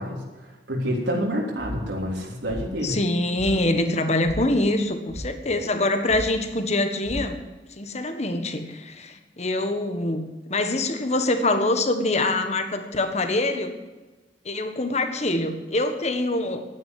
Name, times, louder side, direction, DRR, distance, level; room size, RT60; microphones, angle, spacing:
voice 1, 0.0-3.0, equal, 80° right, -2 dB, 3.4 m, -28 dB
sound 1, 1.6-2.0 2.4-2.9 3.3-3.8 4.2-4.7 5.1-5.7 6.1-6.5 7.0-7.2, equal, 35° right, 2.5 m, -36 dB
voice 2, 2.8-7.4 7.8-13.7 14.4-16.6, left 2 dB, 40° left, 7 dB, 1.5 m, -24 dB
11.0 x 9.6 x 9.6 m, 1.2 s
head